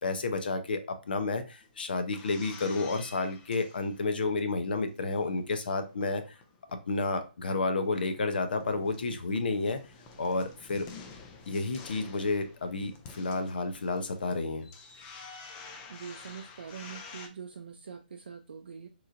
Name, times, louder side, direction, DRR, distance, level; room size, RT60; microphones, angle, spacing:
voice 1, 0.0-6.2 6.9-9.8 10.2-10.9 11.5-14.7, left 3 dB, 70° left, 7 dB, 0.7 m, -31 dB
sound 1, 1.6-4.5 4.9-6.9 7.2-7.3 7.5-17.3, left 4 dB, 15° left, 0.4 m, -50 dB
voice 2, 15.9-18.9, right 6 dB, 75° right, 5 dB, 0.4 m, -44 dB
3.8 x 3.0 x 2.4 m, 0.31 s
hypercardioid pair, 165°, 5 cm